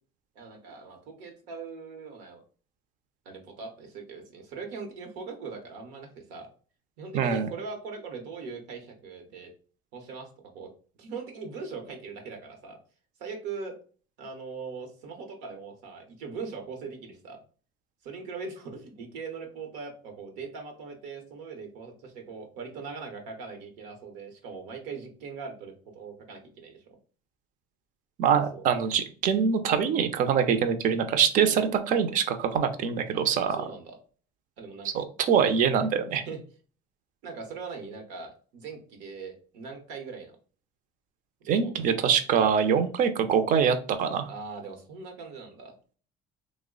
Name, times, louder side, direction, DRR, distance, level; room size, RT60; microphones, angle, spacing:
voice 1, 0.3-2.4 3.2-6.5 7.0-9.5 9.9-10.3 10.5-10.7 11.0-12.8 13.2-13.7 14.2-17.4 18.0-26.8 28.3-28.6 31.5-31.6 33.1-33.2 33.6-34.0 34.6-34.9 36.1-36.4 37.2-40.4 41.4-41.7 42.7-42.8 44.3-45.7, right 4 dB, 90° right, 4 dB, 0.8 m, -40 dB
voice 2, 7.1-7.5 28.2-33.6 34.9-36.2 41.5-44.3, right 7 dB, 50° right, 8 dB, 0.5 m, -24 dB
3.1 x 2.1 x 3.6 m, 0.40 s
cardioid pair, 120°, 17 cm